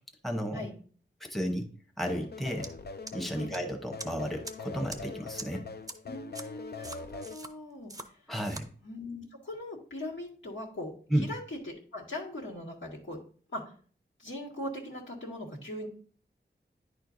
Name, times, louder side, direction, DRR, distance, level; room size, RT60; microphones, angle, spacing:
voice 1, 0.2-0.7 1.2-1.7 2.0-2.7 3.1-5.6 8.3-8.7 11.1-11.3, equal, ahead, 3 dB, 0.9 m, -32 dB
sound 1, 2.0-7.4, left 4 dB, 55° left, 0.5 m, -43 dB
sound 2, 2.6-2.7 3.1-3.6 4.0-4.1 4.4-4.5 4.9-5.0 5.4-5.5 5.9-6.0 6.3-6.4 6.8-7.5 7.9-8.1 8.3-8.6, right 2 dB, 20° right, 0.6 m, -41 dB
voice 2, 6.1-7.9 8.8-13.2 13.5-13.6 14.2-15.9, left 1 dB, 80° left, -4 dB, 1.8 m, -40 dB
10.0 x 4.5 x 2.6 m, 0.44 s
wide cardioid pair, 70°, 19 cm